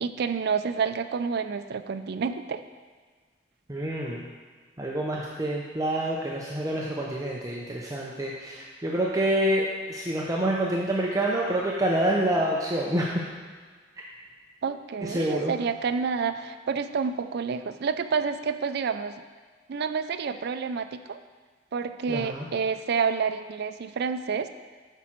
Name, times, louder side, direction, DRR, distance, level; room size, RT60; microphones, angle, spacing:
voice 1, 0.0-2.6 14.6-19.1 19.7-21.2 21.7-24.5, right 5 dB, 60° right, 9 dB, 0.4 m, -29 dB
voice 2, 3.7-4.2 4.8-13.2 15.0-15.5 22.1-22.5, right 1 dB, 20° right, -3 dB, 0.6 m, -27 dB
8.2 x 6.1 x 4.4 m, 1.5 s
head